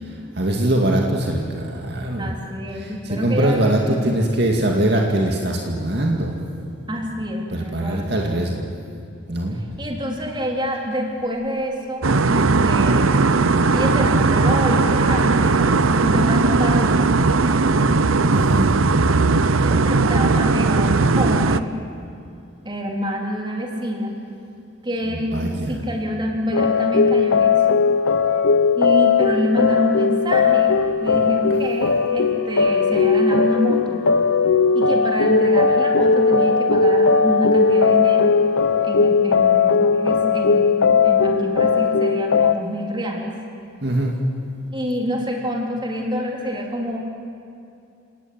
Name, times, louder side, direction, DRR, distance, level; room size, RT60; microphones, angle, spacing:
voice 1, 0.0-2.3 2.7-6.3 7.5-8.7 9.3-9.6 18.3-18.8 25.1-25.8 43.8-44.1, right 1 dB, 55° right, 0 dB, 2.4 m, -22 dB
voice 2, 2.2-4.3 6.9-8.5 9.5-12.0 12.3-13.2 13.7-17.7 19.7-21.8 22.6-24.1 24.8-27.9 28.8-34.0 34.7-38.4 38.8-43.4 44.7-47.0, equal, 20° right, 0 dB, 3.8 m, -27 dB
sound 1, 12.0-21.6, right 3 dB, 85° right, 0.8 m, -18 dB
sound 2, 26.5-42.5, left 5 dB, 90° left, 1.0 m, -18 dB
30.0 x 18.5 x 9.7 m, 2.6 s
head